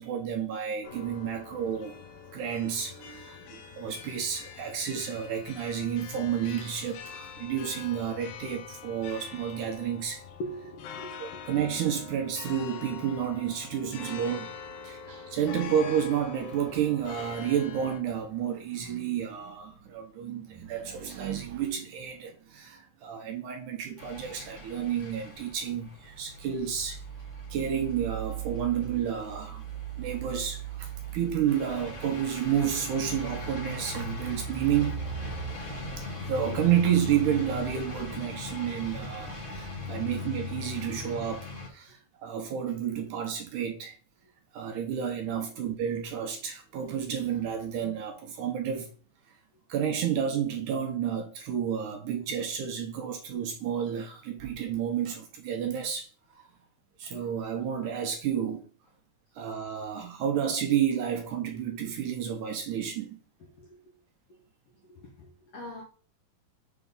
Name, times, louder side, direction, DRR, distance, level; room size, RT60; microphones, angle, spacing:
voice 1, 0.0-2.0 2.3-10.2 11.2-14.5 14.8-27.0 27.5-29.6 30.0-35.0 36.0-44.0 44.5-48.9 49.7-56.1 56.4-56.5 57.0-58.7 59.4-63.2, right 9 dB, 70° right, 2.1 m, -31 dB
sound 1, 0.8-18.0, left 7 dB, 80° left, 2.9 m, -44 dB
voice 2, 10.4-11.4 45.4-45.5 63.6-63.8 64.8-65.8, equal, 60° left, 1.8 m, -42 dB
sound 2, 24.0-41.7, right 1 dB, 35° left, 1.2 m, -38 dB
7.0 x 3.8 x 5.3 m
omnidirectional pair, 4.2 m